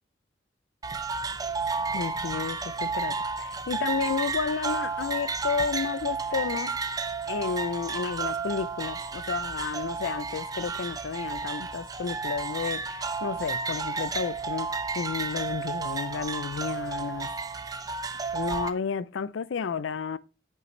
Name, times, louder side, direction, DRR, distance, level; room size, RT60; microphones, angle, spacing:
sound 1, 0.8-18.7, right 4 dB, 20° right, 0.5 m, -32 dB
voice 1, 1.9-7.0 7.3-17.6 18.3-20.2, left 5 dB, 85° left, 0.4 m, -32 dB
9.2 x 5.7 x 3.1 m
head